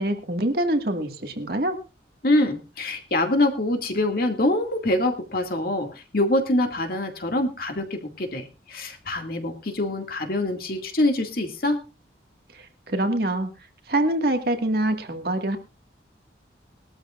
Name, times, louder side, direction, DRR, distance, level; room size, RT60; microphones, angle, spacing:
voice 1, 0.0-1.8 12.9-13.5 13.9-15.6, right 1 dB, 55° right, 6 dB, 1.8 m, -24 dB
voice 2, 2.2-11.8, left 1 dB, 50° left, 4 dB, 2.2 m, -25 dB
20.5 x 13.0 x 2.5 m, 0.28 s
head